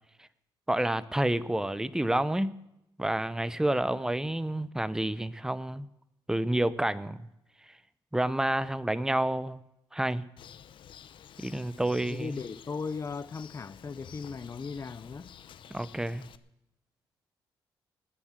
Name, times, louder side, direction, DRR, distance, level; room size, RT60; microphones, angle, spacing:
voice 1, 0.7-2.6 3.0-5.9 6.3-7.3 8.1-9.6 9.9-10.3 11.4-12.4 15.7-16.3, right 1 dB, 5° right, 0.7 m, -29 dB
Bird, 10.4-16.4, left 9 dB, 65° left, 0.8 m, -51 dB
voice 2, 12.1-15.3, left 5 dB, 35° left, 0.7 m, -37 dB
19.5 x 7.4 x 8.1 m
cardioid pair, 80°, 9 cm